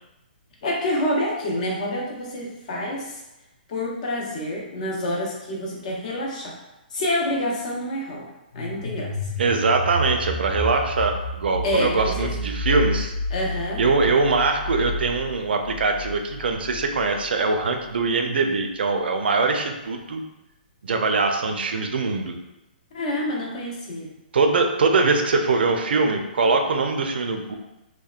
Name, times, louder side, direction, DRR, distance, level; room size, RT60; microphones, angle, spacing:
voice 1, 0.6-3.2 3.7-6.6 6.9-8.3 8.5-9.3 11.6-12.3 13.3-13.8 22.9-24.1, left 1 dB, 45° left, -2 dB, 0.7 m, -27 dB
sound 1, 8.5-17.2, left 1 dB, 90° left, 0.5 m, -30 dB
voice 2, 9.4-13.1 13.8-20.2 20.8-22.3 24.3-27.5, right 3 dB, 85° right, 5 dB, 0.4 m, -22 dB
2.8 x 2.1 x 2.4 m, 0.96 s
hypercardioid pair, 165°, 5 cm